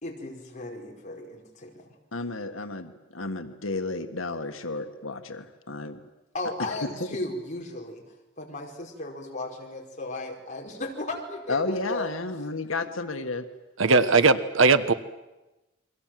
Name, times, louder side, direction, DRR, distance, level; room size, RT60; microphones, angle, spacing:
voice 1, 0.0-1.9 4.5-4.6 5.2-5.3 6.3-8.0 8.4-12.1 12.8-12.9 14.0-14.1, left 2 dB, 40° left, 0 dB, 4.8 m, -35 dB
voice 2, 2.1-6.0 6.6-6.8 11.5-13.5, left 3 dB, 85° left, 8 dB, 1.7 m, -32 dB
voice 3, 13.8-14.9, right 4 dB, 75° right, 12 dB, 1.3 m, -19 dB
29.5 x 23.0 x 7.7 m, 1.0 s
head